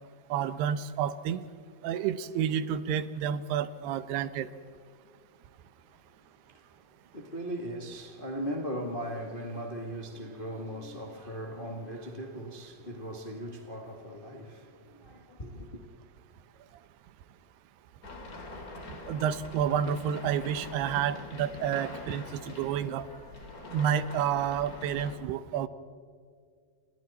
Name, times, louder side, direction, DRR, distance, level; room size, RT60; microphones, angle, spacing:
voice 1, 0.3-1.5 1.8-4.5 19.1-23.1 23.7-25.7, right 9 dB, 85° right, 3.0 m, -30 dB
voice 2, 7.1-15.9, equal, 75° left, 0.4 m, -38 dB
sound 1, 18.0-25.2, left 2 dB, 25° left, 2.6 m, -44 dB
29.5 x 27.5 x 4.2 m
omnidirectional pair, 4.6 m